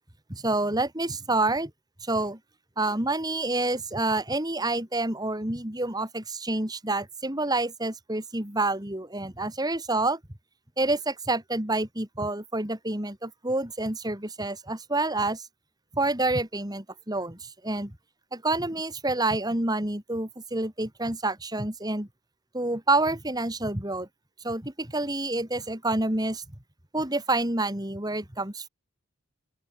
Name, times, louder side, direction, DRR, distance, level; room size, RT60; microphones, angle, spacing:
voice 1, 0.3-1.7 2.0-2.4 2.8-10.2 10.8-15.4 15.9-17.9 18.3-22.1 22.5-24.1 24.4-26.4 26.9-28.7, right 2 dB, 20° right, 2.8 m, -28 dB
open air
head